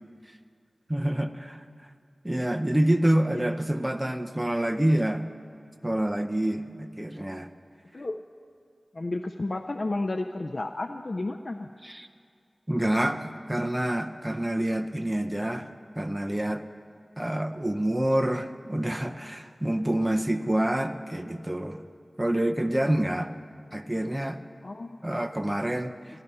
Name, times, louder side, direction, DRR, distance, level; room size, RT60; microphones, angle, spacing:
voice 1, 0.9-1.6 2.2-5.2 5.8-7.5 11.8-12.1 12.7-13.2 13.5-15.7 16.0-16.6 17.2-21.8 22.2-23.3 23.7-24.4 25.0-26.0, right 1 dB, 15° right, 7 dB, 0.6 m, -27 dB
voice 2, 7.9-8.3 8.9-11.7 24.6-25.0, left 2 dB, 55° left, 6 dB, 0.4 m, -32 dB
13.5 x 10.5 x 5.6 m, 2.2 s
wide cardioid pair, 60°, 0 cm